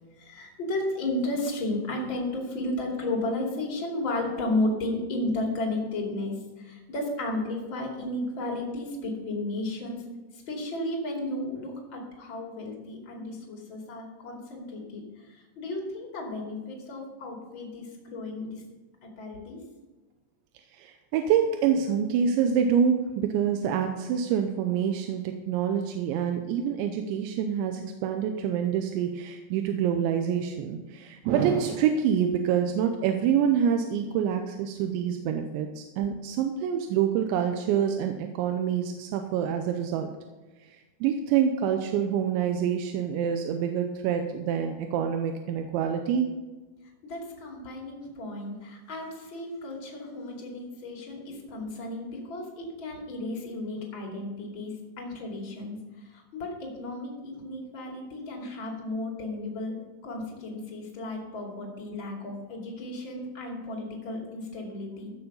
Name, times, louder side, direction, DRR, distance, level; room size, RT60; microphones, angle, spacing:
voice 1, 0.2-10.0 10.3-18.6 19.0-19.6 47.0-65.1, left 2 dB, 35° left, 0 dB, 2.5 m, -33 dB
voice 2, 20.7-40.1 40.7-46.3, right 8 dB, 85° right, 5 dB, 3.1 m, -26 dB
15.0 x 7.1 x 5.5 m, 1.2 s
omnidirectional pair, 5.2 m